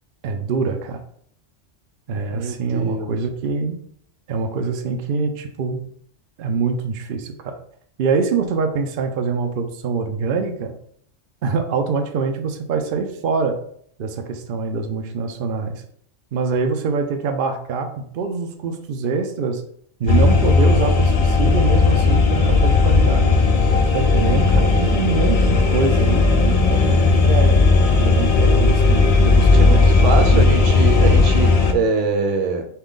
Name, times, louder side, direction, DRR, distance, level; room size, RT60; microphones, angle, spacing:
voice 1, 0.2-1.0 2.1-3.8 4.3-5.8 6.4-7.6 8.0-10.8 11.4-13.6 14.0-15.8 16.3-19.6 20.0-23.4 23.9-27.6 28.0-30.7, right 4 dB, 55° right, 5 dB, 0.7 m, -24 dB
voice 2, 2.3-3.1 29.5-32.7, right 3 dB, 80° right, 5 dB, 1.0 m, -23 dB
sound 1, 20.1-31.7, left 3 dB, 60° left, 0.4 m, -15 dB
5.6 x 2.3 x 3.8 m, 0.65 s
omnidirectional pair, 1.2 m